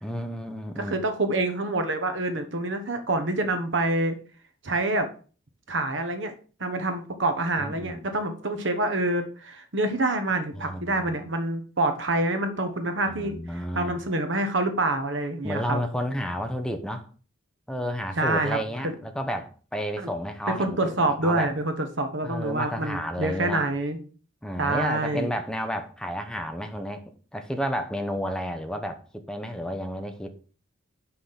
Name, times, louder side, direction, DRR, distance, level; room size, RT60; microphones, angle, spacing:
voice 1, 0.0-1.0 7.6-8.1 10.6-11.1 13.1-14.0 15.4-17.1 17.7-20.9 21.2-21.5 22.2-23.6 24.4-30.3, equal, 5° left, 0.8 m, -31 dB
voice 2, 0.8-4.2 4.6-5.1 5.7-6.3 6.6-15.8 18.2-18.6 18.8-18.9 20.0-20.1 20.5-24.0 24.6-25.3, right 2 dB, 65° right, 1.2 m, -27 dB
5.7 x 4.9 x 5.7 m
head